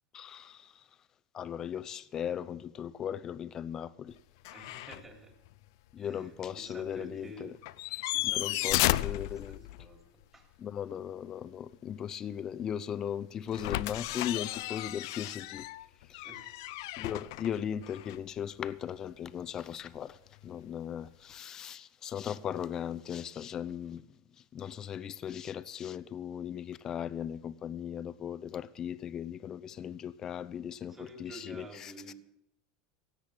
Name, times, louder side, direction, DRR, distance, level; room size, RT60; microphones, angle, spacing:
voice 1, 0.1-0.9 1.3-4.2 5.9-7.5 7.9-9.6 10.6-15.7 16.1-16.2 17.0-32.1, left 9 dB, 30° left, 0.7 m, -38 dB
sound 1, 4.4-5.1 5.5-5.6 7.6-10.0 13.5-18.3 20.4-20.5, left 18 dB, 70° left, 0.5 m, -34 dB
voice 2, 4.5-5.4 6.0-7.5 7.9-10.5 16.2-16.6 30.9-32.1, right 1 dB, 15° right, 3.3 m, -51 dB
17.0 x 7.8 x 8.8 m
supercardioid pair, 140°, 2 cm